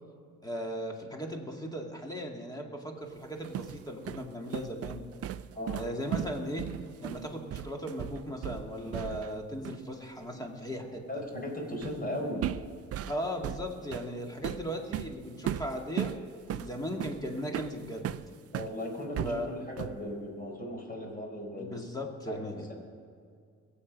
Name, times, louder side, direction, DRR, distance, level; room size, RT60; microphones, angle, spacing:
voice 1, 0.4-5.0 5.7-6.7 7.0-11.0 13.1-16.1 16.5-18.2 19.2-19.5 21.6-22.6, equal, 10° left, 2 dB, 2.1 m, -37 dB
sound 1, 3.2-9.4 9.7-9.9 11.8-12.1 12.4-18.8 19.2-20.1, right 11 dB, 50° right, 0.5 m, -37 dB
voice 2, 5.5-5.8 11.1-12.5 18.5-21.9 22.3-22.7, left 1 dB, 30° left, 0 dB, 4.6 m, -37 dB
22.0 x 7.9 x 5.3 m, 2.2 s
cardioid pair, 90°, 30 cm